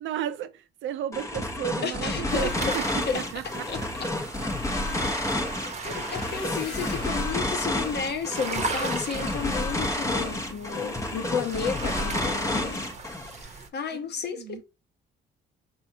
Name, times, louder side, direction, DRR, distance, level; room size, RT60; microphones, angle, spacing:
voice 1, 0.0-3.9 4.6-4.9 5.8-6.1 14.3-14.6, right 11 dB, 75° right, 0.5 m, -34 dB
sound 1, 1.1-13.3, left 1 dB, 15° left, 0.7 m, -30 dB
voice 2, 1.8-2.8 3.1-3.3 3.7-4.1 5.6-12.9 13.3-14.6, left 6 dB, 55° left, 0.9 m, -32 dB
sound 2, 2.3-13.7, right 4 dB, 35° right, 0.8 m, -38 dB
sound 3, 3.6-9.7 10.3-10.7 11.1-11.3 11.6-11.7, left 3 dB, 80° left, 1.8 m, -46 dB
4.6 x 3.3 x 2.8 m
cardioid pair, 90°, 20 cm